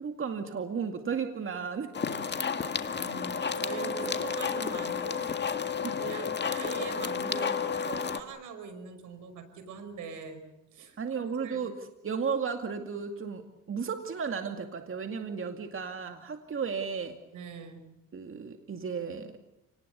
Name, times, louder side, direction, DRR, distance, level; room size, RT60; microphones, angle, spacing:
voice 1, 0.0-1.9 5.8-6.0 11.0-11.7 12.0-13.4 13.7-17.2 18.1-19.4, right 6 dB, 45° right, 5 dB, 2.3 m, -34 dB
sound 1, 1.9-8.2, left 6 dB, 35° left, 1.9 m, -31 dB
voice 2, 2.6-5.3 5.6-10.4 10.7-11.0 11.3-11.7 17.3-17.8, right 5 dB, 80° right, 9 dB, 5.5 m, -43 dB
29.5 x 19.5 x 8.2 m, 0.89 s
cardioid pair, 90°, 30 cm